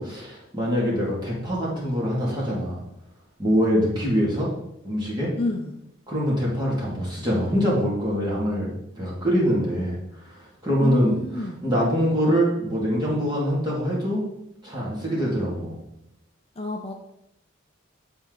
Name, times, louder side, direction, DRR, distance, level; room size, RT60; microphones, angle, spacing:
voice 1, 0.0-2.8 3.4-4.5 4.8-5.3 6.1-8.7 8.9-10.0 10.6-11.1 11.6-14.2 14.6-15.8, equal, 20° right, -5 dB, 2.2 m, -24 dB
voice 2, 5.4-5.8 10.8-11.6 16.6-16.9, left 2 dB, 30° left, 2 dB, 0.5 m, -29 dB
9.9 x 4.4 x 3.9 m, 0.81 s
head